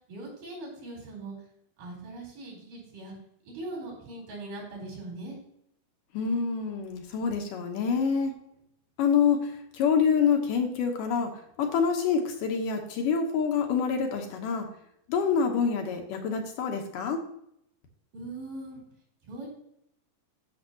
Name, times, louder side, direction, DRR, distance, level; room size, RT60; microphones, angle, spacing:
voice 1, 0.1-1.3 1.8-3.1 3.5-5.4 18.1-18.8 19.2-19.5, right 2 dB, 60° right, -3 dB, 5.5 m, -40 dB
voice 2, 6.1-8.3 9.0-11.3 11.6-14.7 15.1-17.2, left 6 dB, 70° left, 3 dB, 2.6 m, -26 dB
12.5 x 7.2 x 2.9 m, 0.73 s
omnidirectional pair, 4.2 m